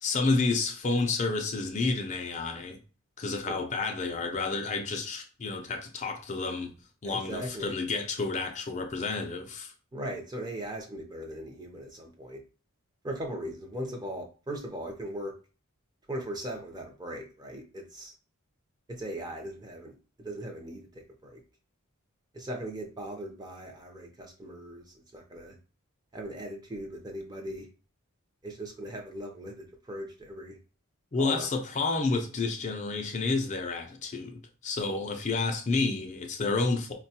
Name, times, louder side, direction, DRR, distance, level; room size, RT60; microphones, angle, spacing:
voice 1, 0.0-2.8 3.2-6.7 7.0-9.7 31.1-36.9, left 3 dB, 35° left, 0.4 m, -30 dB
voice 2, 7.0-7.7 9.9-12.4 13.0-15.3 16.1-18.1 19.0-21.4 22.3-25.6 26.1-27.7 28.4-30.6 31.2-31.5, right 1 dB, 20° right, 0.6 m, -39 dB
4.4 x 2.2 x 2.8 m
head